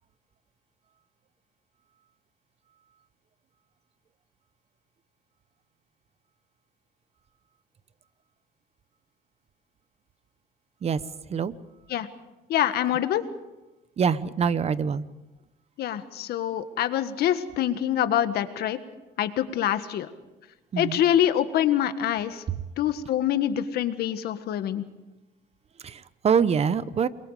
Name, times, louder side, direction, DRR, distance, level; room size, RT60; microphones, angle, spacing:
voice 1, 12.5-13.2 15.8-18.8 19.2-20.1 20.8-22.4 22.8-24.8, left 11 dB, 70° left, 10 dB, 1.7 m, -25 dB
voice 2, 14.0-15.0 20.7-21.0 25.8-27.1, right 6 dB, 40° right, 15 dB, 1.0 m, -24 dB
29.5 x 22.5 x 5.0 m, 1.1 s
cardioid pair, 110°, 17 cm